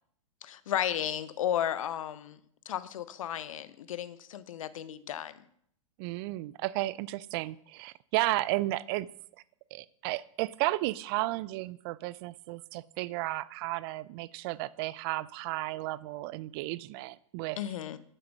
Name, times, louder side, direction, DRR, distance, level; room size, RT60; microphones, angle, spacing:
voice 1, 0.4-2.4 2.6-5.4 17.6-18.0, left 10 dB, 70° left, 14 dB, 0.8 m, -34 dB
voice 2, 6.0-9.1 9.7-17.6, right 18 dB, 45° right, 19 dB, 0.4 m, -33 dB
8.7 x 7.0 x 6.1 m, 0.68 s
hypercardioid pair, 115°, 18 cm